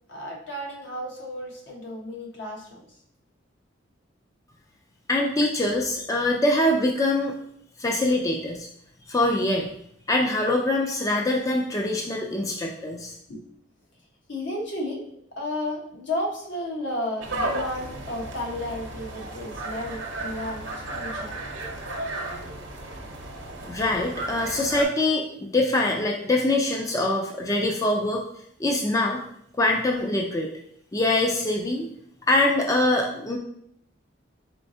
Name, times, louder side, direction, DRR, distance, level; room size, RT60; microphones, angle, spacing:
voice 1, 0.1-2.8 13.3-13.5 14.3-15.0 15.4-21.4, left 1 dB, 70° left, -2 dB, 1.1 m, -33 dB
voice 2, 5.1-7.4 7.8-8.7 9.1-9.7 10.1-13.1 23.7-28.2 28.6-29.2 29.5-30.5 30.9-31.9 32.3-33.4, left 2 dB, 20° left, 0 dB, 0.4 m, -24 dB
sound 1, 17.2-24.8, right 2 dB, 75° right, 0.8 m, -34 dB
4.5 x 4.0 x 2.7 m, 0.69 s
head